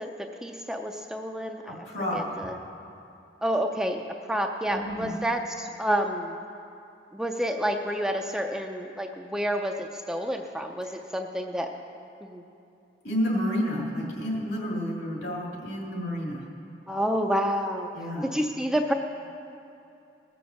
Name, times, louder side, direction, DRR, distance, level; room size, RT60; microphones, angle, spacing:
voice 1, 0.0-1.8 2.1-2.6 3.4-4.0 4.3-6.4 7.1-11.7 12.2-12.4 16.9-17.9 18.2-18.9, equal, 5° right, 3 dB, 0.4 m, -29 dB
voice 2, 1.7-2.4 4.7-5.1 10.8-11.0 13.0-16.4 17.9-18.3, equal, 70° left, -2 dB, 2.4 m, -30 dB
15.5 x 7.0 x 6.4 m, 2.7 s
head